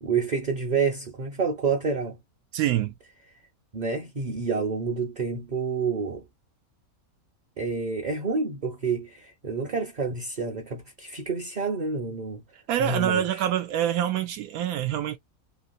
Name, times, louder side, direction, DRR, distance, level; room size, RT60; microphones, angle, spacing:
voice 1, 0.0-2.2 3.7-6.2 7.6-12.4 12.8-13.4, right 5 dB, 40° right, 0.6 m, -28 dB
voice 2, 2.5-2.9 12.7-15.2, right 11 dB, 85° right, 1.1 m, -25 dB
3.1 x 2.8 x 2.6 m
omnidirectional pair, 1.5 m